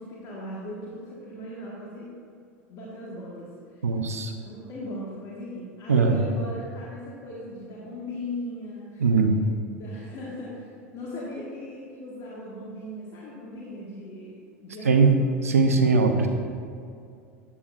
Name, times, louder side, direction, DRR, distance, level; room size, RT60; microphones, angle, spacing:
voice 1, 0.0-2.1 2.7-3.5 4.4-9.0 9.8-15.3 16.0-16.3, left 1 dB, 45° left, -6 dB, 1.6 m, -38 dB
voice 2, 3.8-4.3 5.9-6.2 9.0-9.4 14.8-15.1 15.4-16.3, right 4 dB, 85° right, 5 dB, 0.7 m, -20 dB
8.6 x 8.3 x 2.5 m, 2.4 s
hypercardioid pair, 85°, 8 cm